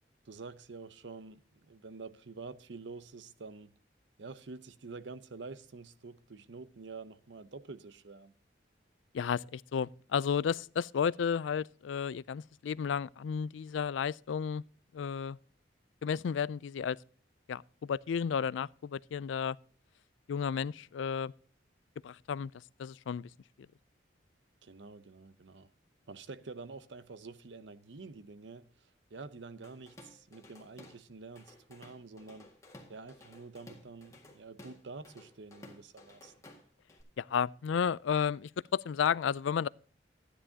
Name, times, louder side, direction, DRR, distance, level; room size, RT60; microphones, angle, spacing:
voice 1, 0.3-3.7 4.2-8.3 24.6-25.7 26.1-32.5 32.9-36.3, right 4 dB, 75° right, 0.7 m, -48 dB
voice 2, 9.1-14.6 14.9-15.4 16.0-17.0 17.5-19.6 20.3-21.3 22.0-22.5 22.8-23.3 37.2-39.7, left 7 dB, 85° left, 0.3 m, -32 dB
Drum kit / Drum, 29.6-31.0 31.4-37.0, left 1 dB, 15° left, 1.9 m, -55 dB
13.0 x 10.0 x 2.8 m
head